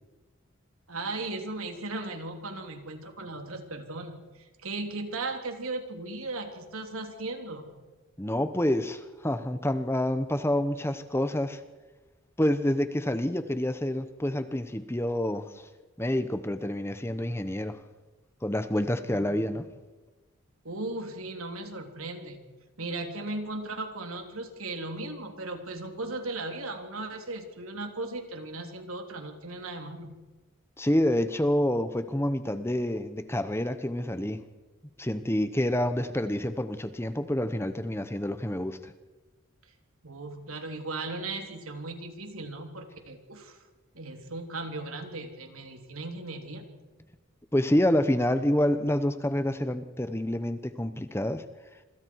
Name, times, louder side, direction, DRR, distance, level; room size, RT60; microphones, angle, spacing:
voice 1, 0.9-7.7 19.1-19.2 20.6-22.4 22.8-30.1 40.0-43.6 43.9-46.7, right 2 dB, 85° right, 4 dB, 3.4 m, -37 dB
voice 2, 8.2-11.6 12.4-15.5 16.0-17.8 18.4-19.7 30.8-34.4 35.0-38.9 47.5-51.4, left 1 dB, 10° left, 11 dB, 0.9 m, -28 dB
27.0 x 24.5 x 4.8 m, 1.2 s
head